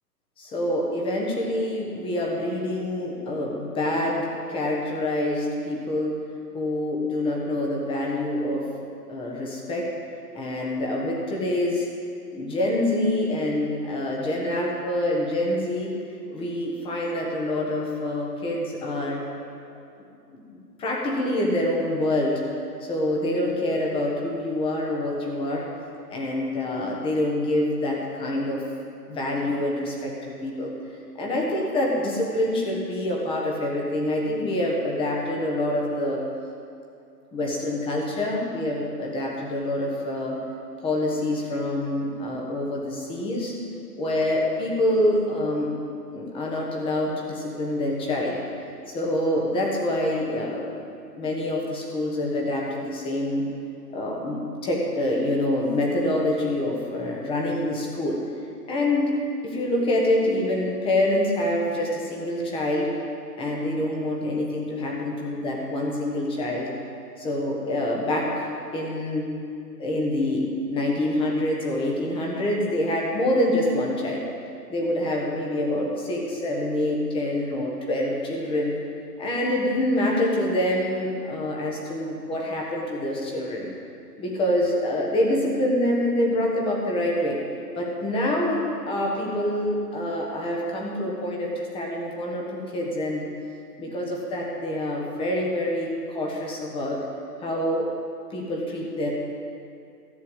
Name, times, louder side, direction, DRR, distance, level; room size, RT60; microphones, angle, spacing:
voice 1, 0.4-6.2 6.5-8.7 9.1-9.9 10.3-11.9 12.3-15.9 16.3-19.2 20.0-20.1 20.3-22.4 22.8-25.6 26.1-28.6 29.1-30.7 31.1-36.2 37.3-40.4 40.8-43.6 43.9-45.7 46.1-48.4 48.9-50.8 51.2-53.4 53.9-58.2 58.7-59.1 59.4-62.9 63.4-66.7 67.2-69.3 69.8-74.3 74.7-78.7 79.2-83.7 84.2-87.4 87.7-93.3 93.8-97.0 97.4-97.9 98.3-99.1, left 1 dB, 10° left, -2 dB, 1.3 m, -26 dB
13.5 x 6.8 x 7.9 m, 2.5 s
hypercardioid pair, 155°, 49 cm